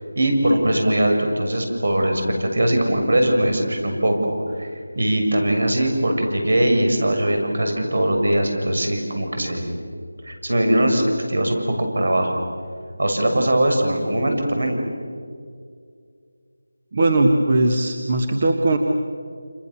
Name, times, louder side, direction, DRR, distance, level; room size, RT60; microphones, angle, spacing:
voice 1, 0.2-4.7 5.0-9.7 10.2-11.0 11.3-11.6 11.9-12.4 13.0-14.8, right 1 dB, 70° right, 3 dB, 6.8 m, -20 dB
voice 2, 16.9-18.8, right 2 dB, 30° right, 4 dB, 1.5 m, -19 dB
29.0 x 28.0 x 7.2 m, 2.2 s
figure-of-eight pair, 175°, 0 cm